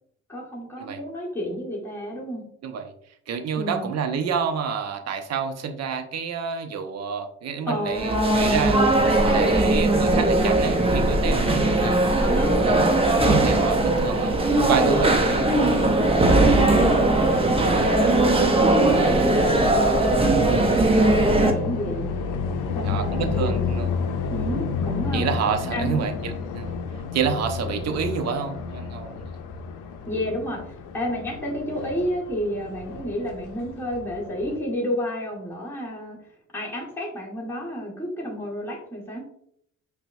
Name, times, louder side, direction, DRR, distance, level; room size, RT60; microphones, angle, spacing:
voice 1, 0.3-2.4 3.6-3.9 7.6-8.6 12.2-12.5 14.8-16.1 16.3-22.1 22.7-23.6 24.3-25.3 25.7-26.1 30.1-36.2 36.5-39.2, equal, 10° left, -5 dB, 1.5 m, -31 dB
voice 2, 3.3-8.8 9.2-12.3 12.7-12.9 13.2-14.3 14.7-15.5 22.9-23.9 25.1-26.8 27.1-29.3, right 6 dB, 60° right, 7 dB, 0.6 m, -28 dB
sound 1, 7.9-21.5, right 2 dB, 20° right, 0.7 m, -19 dB
sound 2, 16.9-34.6, left 5 dB, 85° left, 0.5 m, -31 dB
5.4 x 2.2 x 2.6 m, 0.70 s
cardioid pair, 90°, 30 cm